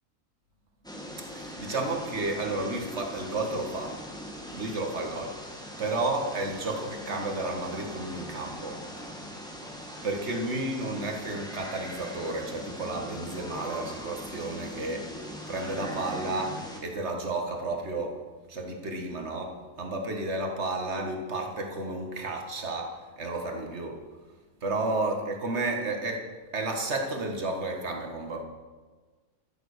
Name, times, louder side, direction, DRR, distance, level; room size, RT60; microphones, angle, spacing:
sound 1, 0.8-16.8, equal, 5° left, 1.6 m, -41 dB
voice 1, 1.2-4.1 4.5-5.5 5.8-8.8 10.0-24.3 24.6-28.4, right 2 dB, 50° right, 3 dB, 2.0 m, -32 dB
14.0 x 7.9 x 6.7 m, 1.4 s
omnidirectional pair, 1.5 m